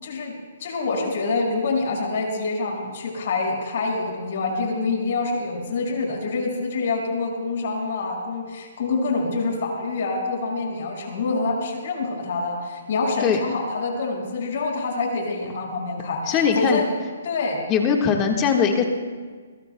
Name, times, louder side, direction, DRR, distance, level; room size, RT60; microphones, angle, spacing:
voice 1, 0.0-0.3 0.6-16.9 17.2-17.6, left 3 dB, 55° left, 0 dB, 5.6 m, -26 dB
voice 2, 16.3-16.8 17.7-18.8, left 7 dB, 25° left, 2 dB, 1.5 m, -20 dB
22.5 x 22.0 x 2.3 m, 1.5 s
hypercardioid pair, 155°, 0 cm